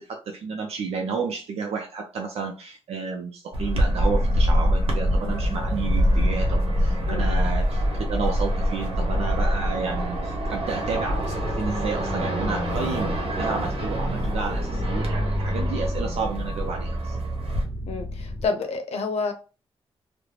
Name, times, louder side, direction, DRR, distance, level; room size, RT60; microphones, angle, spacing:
voice 1, 0.0-17.2, right 5 dB, 80° right, 0.4 m, -31 dB
sound 1, 3.5-17.6, equal, 65° right, 0.8 m, -25 dB
sound 2, 11.4-18.5, equal, 35° right, 0.7 m, -32 dB
voice 2, 17.9-19.3, left 4 dB, 85° left, 0.6 m, -28 dB
2.3 x 2.0 x 3.2 m
cardioid pair, 95°, 10 cm